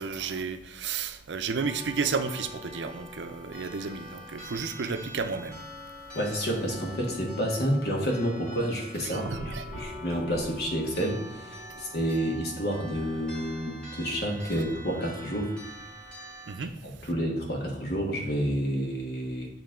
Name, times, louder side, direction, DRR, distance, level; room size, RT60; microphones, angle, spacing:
voice 1, 0.0-5.6 9.0-9.8 16.5-16.7, right 5 dB, 80° right, 0.5 m, -32 dB
sound 1, 1.6-16.5, left 1 dB, 5° left, 1.9 m, -44 dB
voice 2, 6.1-15.5 16.8-19.5, equal, 60° left, 1.4 m, -29 dB
8.7 x 3.1 x 3.7 m
head